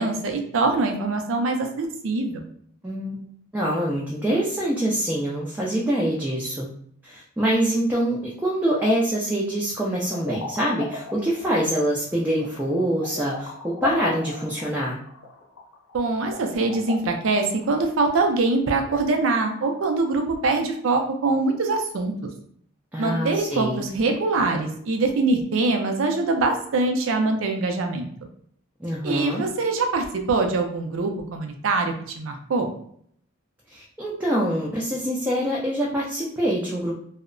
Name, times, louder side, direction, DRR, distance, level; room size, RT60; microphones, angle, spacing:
voice 1, 0.0-2.4 15.9-22.1 23.0-28.1 29.0-32.7, right 3 dB, 70° right, 4 dB, 0.4 m, -23 dB
voice 2, 2.8-3.3 3.5-6.7 7.0-15.0 22.9-23.8 28.8-29.4 33.7-36.9, right 1 dB, 10° right, -5 dB, 0.3 m, -25 dB
sound 1, 10.0-19.5, left 3 dB, 75° left, 0.7 m, -38 dB
2.7 x 2.0 x 2.5 m, 0.63 s
head